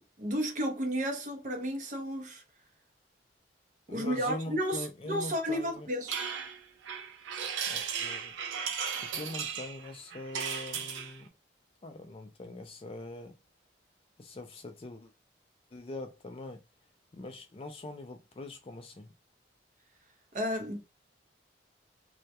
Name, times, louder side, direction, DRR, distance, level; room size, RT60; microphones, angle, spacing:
voice 1, 0.0-2.4 3.9-6.2 20.3-20.8, equal, 45° right, 0.6 m, -32 dB
voice 2, 3.9-5.9 7.7-8.4 9.0-11.3 11.8-13.4 14.2-15.1 15.7-16.6 17.1-19.1, left 2 dB, 30° left, 0.3 m, -43 dB
sound 1, 6.1-11.2, right 7 dB, 90° right, 0.4 m, -36 dB
2.2 x 2.1 x 2.7 m
head